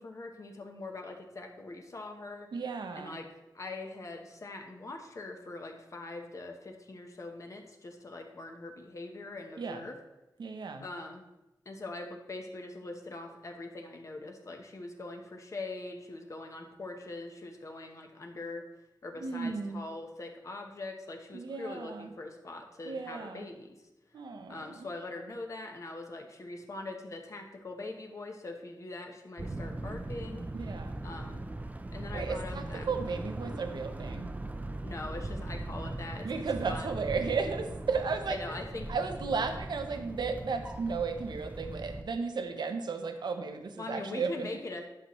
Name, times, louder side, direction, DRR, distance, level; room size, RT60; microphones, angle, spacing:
voice 1, 0.0-2.5 3.0-3.2 3.5-9.9 10.8-11.2 11.7-18.6 19.0-23.8 24.5-30.5 31.0-31.4 31.9-32.9 34.8-36.3 36.7-36.9 38.3-39.0 43.8-44.9, left 2 dB, 40° left, 3 dB, 0.8 m, -42 dB
voice 2, 2.5-3.2 9.6-9.8 10.4-10.8 19.2-19.8 21.3-22.1 22.8-23.4 24.1-24.9 30.5-31.0 32.1-34.3 36.2-38.6 38.9-44.5, right 5 dB, 65° right, 7 dB, 0.7 m, -34 dB
sound 1, 29.4-42.0, right 2 dB, 20° right, 0.4 m, -39 dB
11.0 x 5.8 x 3.0 m, 0.98 s
wide cardioid pair, 160°, 8 cm